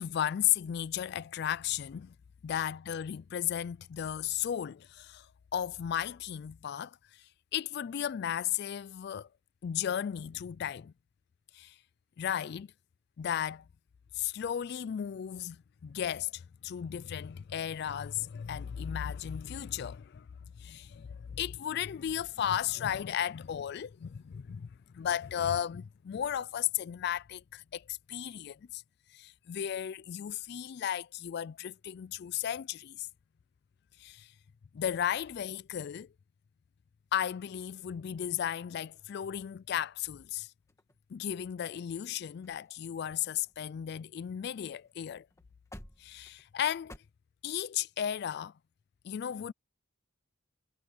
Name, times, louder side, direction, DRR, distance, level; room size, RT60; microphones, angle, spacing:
voice 1, 0.0-2.1 2.4-5.3 5.5-9.3 9.6-10.9 11.5-11.8 12.2-12.7 13.2-13.7 14.1-20.3 20.6-24.7 24.9-28.8 29.1-33.1 34.0-34.3 34.7-36.1 37.1-40.5 41.1-45.3 46.0-46.9 47.4-48.5 49.0-49.5, left 10 dB, 50° left, 0.3 m, -35 dB
sound 1, 40.7-41.5 42.1-42.2 42.4-42.7 43.0-44.6 44.9-45.0 45.3-47.0, left 1 dB, 15° left, 1.7 m, -54 dB
head